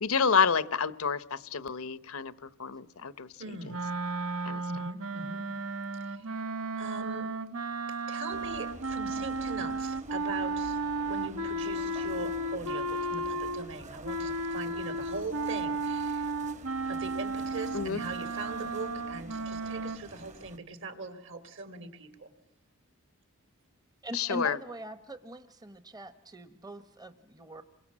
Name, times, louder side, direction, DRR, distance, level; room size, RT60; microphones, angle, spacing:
voice 1, 0.0-3.3 4.4-4.6 17.7-18.0 24.1-24.6, left 6 dB, 70° left, 0.9 m, -29 dB
voice 2, 3.4-3.8 4.7-5.4 6.0-6.5 6.8-7.3 8.1-10.8 11.1-16.3 16.8-22.3, right 3 dB, 60° right, 3.0 m, -41 dB
sound 1, 3.7-13.7 14.0-20.0, right 2 dB, 75° right, 1.2 m, -34 dB
sound 2, 8.3-20.6, right 1 dB, 35° right, 1.4 m, -48 dB
voice 3, 24.0-27.6, right 1 dB, 15° right, 1.0 m, -42 dB
28.5 x 23.0 x 7.4 m
head